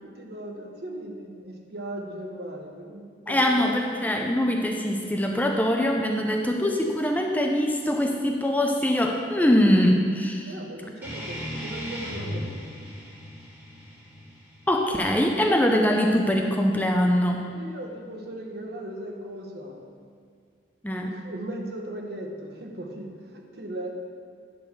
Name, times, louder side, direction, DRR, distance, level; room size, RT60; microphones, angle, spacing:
voice 1, 0.0-3.8 10.5-12.6 17.5-19.9 21.1-23.9, right 1 dB, 60° right, 1 dB, 1.1 m, -38 dB
voice 2, 3.3-10.5 14.7-17.4 20.8-21.2, equal, 10° left, 1 dB, 0.5 m, -23 dB
sound 1, 11.0-16.1, equal, 15° right, 1.9 m, -37 dB
10.0 x 4.0 x 6.6 m, 2.1 s
head